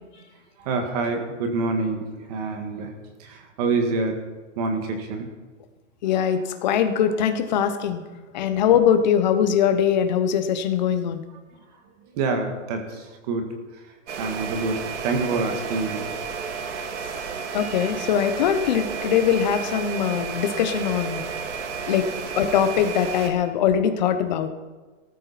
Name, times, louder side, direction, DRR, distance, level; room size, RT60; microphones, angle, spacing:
voice 1, 0.6-2.9 3.2-4.2 4.6-5.3 12.1-13.5 14.2-16.1 17.5-17.9, right 3 dB, 30° right, 5 dB, 1.9 m, -27 dB
voice 2, 6.0-8.0 8.3-11.2 17.5-21.2 21.9-22.1 22.4-24.5, left 8 dB, 35° left, 9 dB, 1.1 m, -22 dB
sound 1, 14.1-23.3, right 6 dB, 65° right, 2.5 m, -32 dB
17.5 x 13.5 x 4.3 m, 1.3 s
hypercardioid pair, 165°, 38 cm